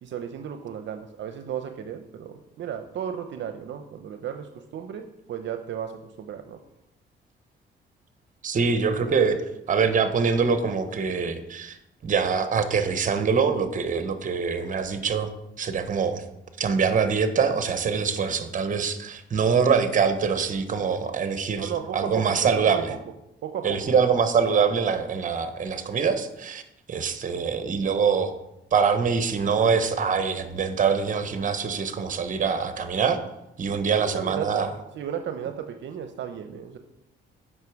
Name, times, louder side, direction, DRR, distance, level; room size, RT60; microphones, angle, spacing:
voice 1, 0.0-5.9 6.2-6.6 21.6-23.0 23.4-24.0 34.0-34.7 35.0-36.8, right 9 dB, 70° right, 7 dB, 0.7 m, -34 dB
voice 2, 8.4-9.4 9.7-11.8 12.0-15.3 15.6-16.2 16.6-22.9 23.6-26.6 26.9-28.3 28.7-33.2 33.6-34.7, right 6 dB, 40° right, 9 dB, 0.9 m, -24 dB
8.1 x 5.5 x 4.7 m, 0.88 s
cardioid pair, 90°, 20 cm